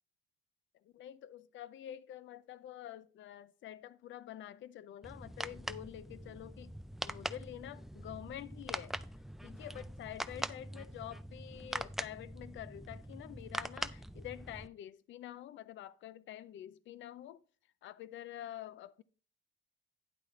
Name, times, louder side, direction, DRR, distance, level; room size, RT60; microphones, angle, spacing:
voice 1, 0.8-6.8 7.0-9.0 9.4-17.4 17.8-19.0, left 12 dB, 70° left, 0.5 m, -48 dB
sound 1, 5.0-14.7, equal, ahead, 0.4 m, -43 dB
10.0 x 8.3 x 3.2 m
cardioid pair, 90°, 20 cm